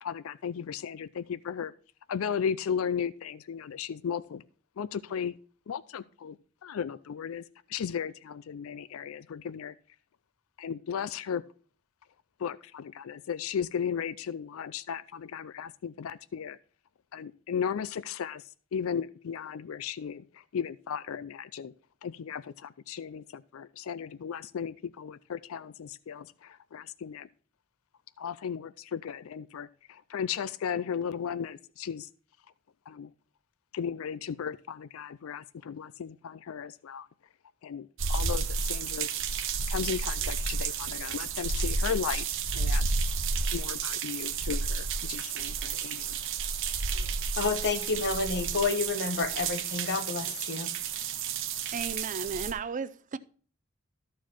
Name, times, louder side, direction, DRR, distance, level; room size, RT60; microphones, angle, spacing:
voice 1, 0.0-1.7 2.1-4.4 4.8-5.4 5.7-6.4 6.6-7.4 7.7-9.7 10.6-11.4 12.4-16.6 17.1-18.4 18.7-21.7 22.0-27.3 28.2-32.1 32.9-33.1 33.7-37.1 37.6-39.1 39.7-42.3 42.5-42.9 43.5-46.2, left 7 dB, 70° left, 0.4 m, -35 dB
sound 1, 38.0-52.5, right 5 dB, 65° right, 0.9 m, -31 dB
voice 2, 47.4-50.7, left 4 dB, 55° left, 1.1 m, -30 dB
voice 3, 51.7-53.2, right 5 dB, 35° right, 0.4 m, -35 dB
13.5 x 4.7 x 4.3 m
head